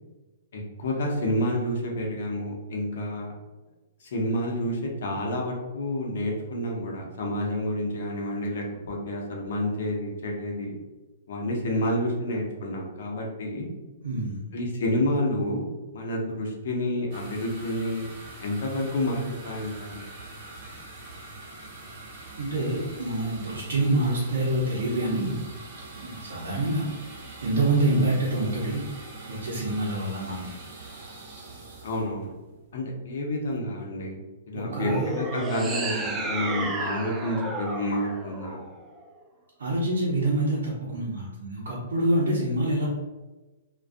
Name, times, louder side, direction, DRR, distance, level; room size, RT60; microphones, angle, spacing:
voice 1, 0.5-3.3 4.0-10.8 11.3-13.7 14.5-18.1 18.4-20.0 27.9-28.1 31.8-32.3 32.7-34.2 34.5-38.6, left 1 dB, 65° left, -1 dB, 0.7 m, -29 dB
voice 2, 14.0-14.4 22.4-25.4 26.0-26.9 27.4-28.8 29.3-30.6 34.5-35.1 39.6-42.9, right 2 dB, 80° right, -6 dB, 0.6 m, -26 dB
sound 1, 17.1-32.8, right 2 dB, 50° right, 0.9 m, -44 dB
sound 2, 34.7-39.1, right 2 dB, 15° right, 0.3 m, -32 dB
2.3 x 2.2 x 2.5 m, 1.1 s
hypercardioid pair, 140°, 0 cm